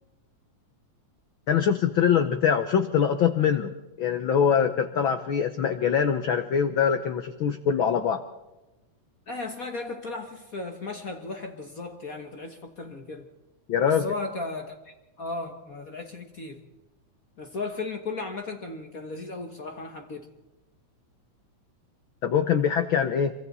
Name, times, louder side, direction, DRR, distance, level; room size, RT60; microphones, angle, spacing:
voice 1, 1.5-3.7 4.0-8.2 13.7-14.1 22.2-23.3, left 7 dB, 85° left, 1.1 m, -23 dB
voice 2, 9.3-13.3 13.8-16.6 17.4-20.3, left 3 dB, 50° left, 1.0 m, -36 dB
26.5 x 24.0 x 4.1 m
omnidirectional pair, 3.5 m